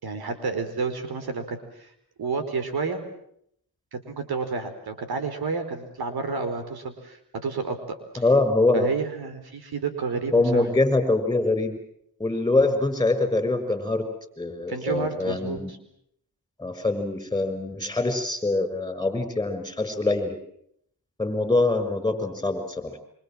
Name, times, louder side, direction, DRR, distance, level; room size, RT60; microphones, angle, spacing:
voice 1, 0.0-1.9 2.2-3.0 3.9-8.2 8.7-10.7 14.7-15.8, right 4 dB, 65° right, 8 dB, 4.7 m, -30 dB
voice 2, 8.2-8.9 10.3-11.7 12.2-14.1 14.4-15.7 16.6-20.4 21.2-23.0, left 2 dB, 10° left, 9 dB, 6.2 m, -24 dB
26.0 x 25.5 x 7.7 m, 0.71 s
cardioid pair, 75°, 41 cm